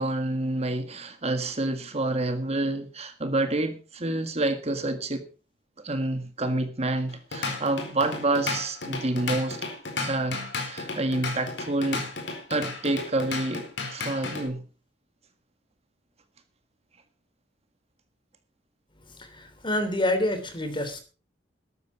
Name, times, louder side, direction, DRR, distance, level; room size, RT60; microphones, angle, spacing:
voice 1, 0.0-5.3 5.8-9.6 10.0-12.1 12.5-14.6, right 2 dB, 35° right, 1.7 m, -28 dB
Drum kit / Drum, 7.1-14.5, left 3 dB, 75° left, 4.3 m, -33 dB
voice 2, 19.2-21.0, left 1 dB, 30° left, 3.2 m, -27 dB
13.5 x 13.0 x 4.8 m
head